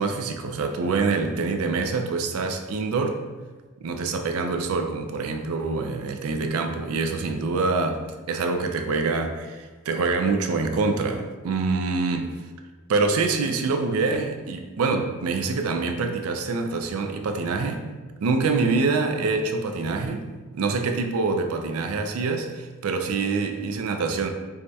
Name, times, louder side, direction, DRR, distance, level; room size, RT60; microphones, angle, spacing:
voice 1, 0.0-3.2 3.8-12.4 12.9-17.8 18.2-24.3, right 4 dB, 85° right, 5 dB, 0.4 m, -25 dB
4.7 x 2.2 x 2.6 m, 1.3 s
head